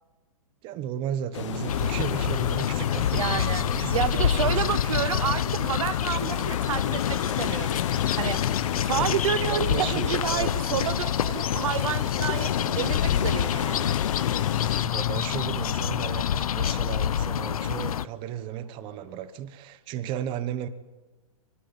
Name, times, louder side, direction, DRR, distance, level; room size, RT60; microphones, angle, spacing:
voice 1, 0.6-5.0 8.9-9.1 9.5-10.7 14.8-20.7, right 10 dB, 25° right, 14 dB, 1.1 m, -35 dB
sound 1, 1.3-14.9, left 10 dB, 55° left, 1.3 m, -32 dB
sound 2, 1.7-18.1, left 9 dB, 75° left, 0.7 m, -27 dB
voice 2, 3.1-3.6 3.9-7.8 8.2-8.4 8.8-13.9, right 10 dB, 60° right, 15 dB, 0.8 m, -30 dB
sound 3, 3.9-19.3, equal, 5° left, 5.1 m, -57 dB
23.5 x 13.0 x 9.9 m, 1.2 s
hypercardioid pair, 145°, 19 cm